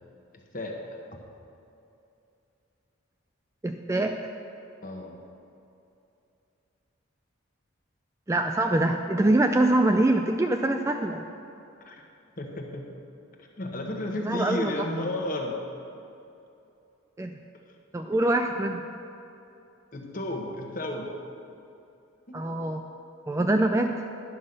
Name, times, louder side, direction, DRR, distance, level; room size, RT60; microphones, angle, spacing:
voice 1, 3.6-4.2 8.3-11.2 14.3-14.7 17.2-17.3 17.9-18.8 22.3-22.8 23.3-23.9, right 1 dB, 15° right, 4 dB, 0.3 m, -24 dB
voice 2, 4.8-5.2 11.8-12.0 12.4-12.9 13.4-15.5 19.9-21.1 22.3-22.4, left 1 dB, 40° left, 1 dB, 1.1 m, -33 dB
11.0 x 5.6 x 6.5 m, 2.7 s
head